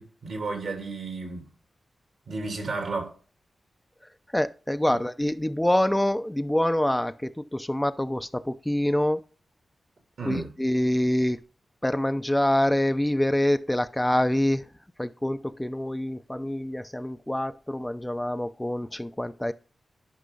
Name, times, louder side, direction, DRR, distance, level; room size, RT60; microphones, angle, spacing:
voice 1, 0.0-1.5 2.3-3.2 4.9-5.0 10.2-10.5, right 3 dB, 80° right, 3.1 m, -33 dB
voice 2, 4.3-9.2 10.2-11.4 11.8-14.6 15.0-19.5, left 1 dB, 10° left, 0.6 m, -26 dB
11.5 x 5.4 x 3.9 m
cardioid pair, 45°, 0 cm